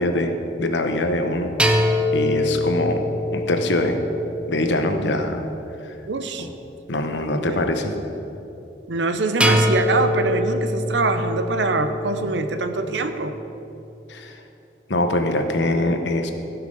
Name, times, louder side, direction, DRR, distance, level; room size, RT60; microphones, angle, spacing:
voice 1, 0.0-1.6 2.1-3.0 3.3-4.0 4.5-5.4 5.8-5.9 6.4-6.5 6.9-7.9 14.1-14.4 14.9-16.3, left 1 dB, 90° left, 6 dB, 1.0 m, -23 dB
sound 1, 1.6-5.9 9.4-13.2, left 1 dB, 5° right, 0.6 m, -24 dB
voice 2, 6.1-6.5 7.3-7.7 8.9-13.4, right 3 dB, 90° right, 9 dB, 0.7 m, -24 dB
15.5 x 5.9 x 5.3 m, 2.9 s
head